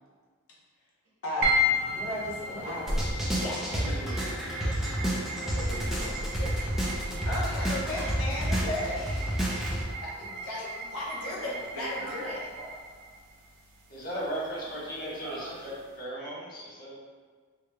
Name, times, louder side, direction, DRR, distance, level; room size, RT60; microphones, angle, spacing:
voice 1, 1.2-1.6 1.9-2.8 3.4-3.9 7.3-9.0 10.0-12.4, left 1 dB, 70° left, -5 dB, 0.9 m, -35 dB
sound 1, 1.4-15.9, left 1 dB, 55° right, 0.6 m, -36 dB
sound 2, 1.6-9.8, equal, 25° right, 0.8 m, -47 dB
voice 2, 2.7-3.0 3.8-4.2 4.6-4.8 5.4-6.5 11.2-12.7 14.7-15.7, right 1 dB, 70° right, -7 dB, 1.1 m, -42 dB
sound 3, 2.9-9.8, equal, ahead, 0.4 m, -30 dB
voice 3, 13.9-16.9, right 1 dB, 40° left, -8 dB, 1.2 m, -37 dB
3.7 x 3.1 x 2.2 m, 1.5 s
head